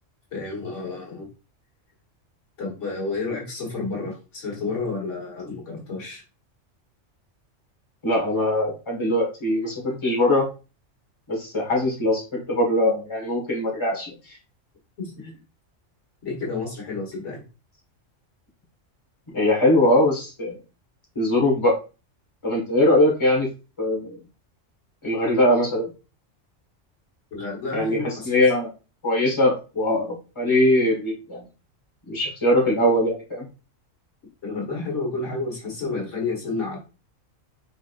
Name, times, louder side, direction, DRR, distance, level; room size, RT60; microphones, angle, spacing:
voice 1, 0.3-1.3 2.6-6.2 15.0-15.1 16.2-17.4 27.3-28.4 34.4-36.8, left 3 dB, 70° left, -2 dB, 1.9 m, -30 dB
voice 2, 8.0-10.5 11.3-14.4 15.2-15.3 19.3-20.6 21.1-21.8 22.4-23.5 23.8-24.2 25.0-25.9 27.7-28.7 29.0-31.5 32.1-33.4, left 1 dB, 20° left, -2 dB, 1.6 m, -21 dB
4.8 x 4.1 x 2.5 m, 0.32 s
omnidirectional pair, 1.3 m